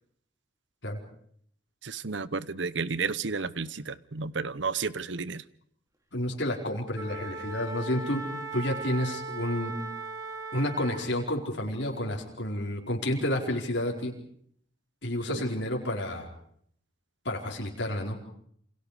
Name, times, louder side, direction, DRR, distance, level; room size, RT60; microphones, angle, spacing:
voice 1, 1.8-5.4 15.3-15.4, right 4 dB, 75° right, 17 dB, 0.9 m, -32 dB
voice 2, 6.1-8.2 8.5-9.7 10.5-14.1 15.0-16.3 17.2-18.2, left 1 dB, 70° left, 0 dB, 4.6 m, -30 dB
Wind instrument woodwind instrument, 6.9-11.3, right 2 dB, 15° right, 3.7 m, -38 dB
28.5 x 26.5 x 5.0 m, 0.65 s
head